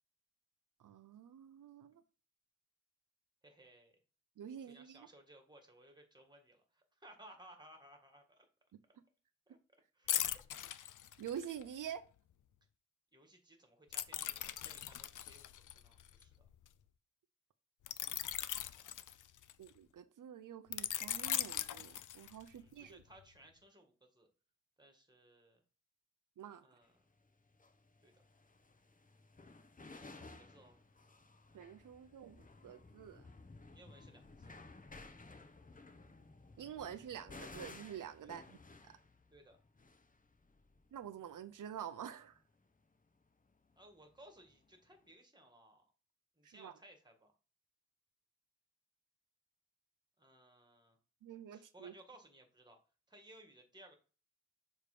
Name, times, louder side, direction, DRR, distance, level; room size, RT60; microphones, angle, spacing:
voice 1, 0.8-2.0 4.4-5.1 11.2-12.0 19.6-23.0 26.4-26.7 31.5-33.3 36.6-38.6 38.8-38.9 40.9-42.4 46.4-46.7 51.2-51.9, right 9 dB, 90° right, 0.6 m, -48 dB
voice 2, 3.4-4.0 4.6-8.5 8.9-9.0 9.5-9.6 9.9-10.2 10.5-10.8 13.1-16.5 22.5-24.3 24.8-25.6 26.6-27.1 28.0-28.1 29.8-30.8 33.7-34.6 38.2-38.4 39.3-39.6 43.8-45.9 46.4-47.3 50.2-51.0 51.5-52.8 53.1-53.9, right 1 dB, 15° right, 1.7 m, -61 dB
sound 1, 10.1-11.6 13.9-16.7 17.9-19.7 20.7-22.6 23.0-23.2, left 11 dB, 75° left, 0.5 m, -39 dB
sound 2, 26.8-26.9 27.5-42.8 43.0-45.1, left 3 dB, 25° left, 0.8 m, -57 dB
6.8 x 3.1 x 4.9 m
wide cardioid pair, 90°, 31 cm